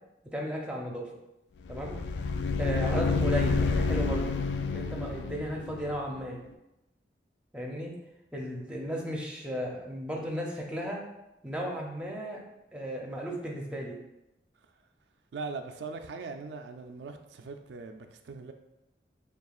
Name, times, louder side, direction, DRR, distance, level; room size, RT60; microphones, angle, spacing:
voice 1, 0.3-1.1 1.7-1.9 2.6-4.3 4.7-6.4 7.5-7.9 8.3-11.0 11.4-12.4 12.7-14.0, equal, 5° right, -1 dB, 0.6 m, -35 dB
sound 1, 1.7-6.3, left 4 dB, 80° left, 0.3 m, -29 dB
voice 2, 15.3-18.5, right 4 dB, 85° right, 6 dB, 0.3 m, -40 dB
6.8 x 2.3 x 2.4 m, 0.91 s
head